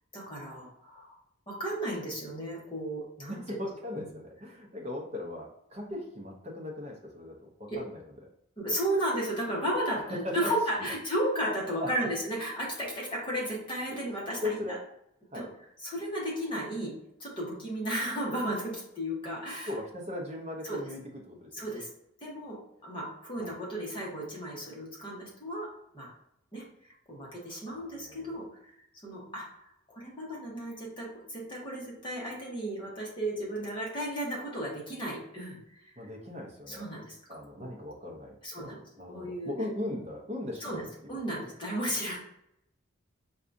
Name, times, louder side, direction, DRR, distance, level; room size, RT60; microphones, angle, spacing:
voice 1, 0.1-1.1 1.5-3.6 4.0-4.1 7.7-7.8 8.6-14.8 15.3-15.4 15.8-16.9 17.2-19.7 20.6-20.8 21.5-21.9 22.2-22.6 22.8-25.7 25.9-26.1 26.5-28.4 29.0-29.4 29.9-35.8 36.7-37.2 37.6-37.7 38.4-38.8 39.1-39.5 40.6-42.2, right 1 dB, 25° left, -4 dB, 1.0 m, -34 dB
voice 2, 3.3-8.3 10.4-10.5 11.8-11.9 14.4-14.8 15.3-15.5 19.7-21.0 21.3-21.8 23.4-23.6 27.7-28.4 36.0-36.9 37.3-40.8 41.2-41.4, left 1 dB, 30° right, 0 dB, 0.7 m, -39 dB
4.7 x 2.3 x 2.6 m, 0.76 s
head